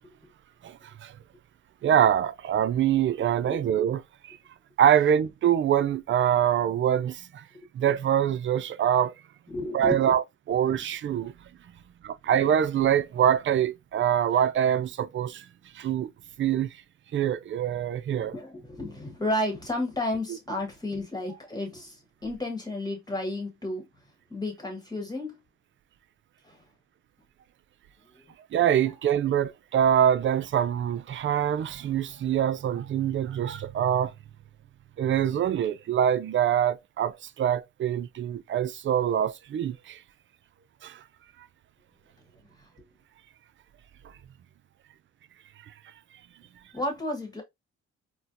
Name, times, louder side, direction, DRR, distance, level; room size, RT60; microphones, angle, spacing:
voice 1, 0.6-1.1 1.8-4.0 4.3-4.4 4.8-7.4 7.7-9.1 9.7-11.3 12.0-15.4 15.7-16.1 16.4-16.7 17.1-18.3 28.5-34.1 35.0-40.0 40.8-41.0, right 9 dB, 40° right, 0.4 m, -24 dB
voice 2, 9.5-10.2 10.7-10.8 18.1-23.9 24.3-25.4 26.4-26.6 28.1-28.3 28.8-29.0 42.3-42.7 46.7-47.4, left 1 dB, 15° left, 1.3 m, -33 dB
4.2 x 2.1 x 2.5 m
cardioid pair, 90°, 30 cm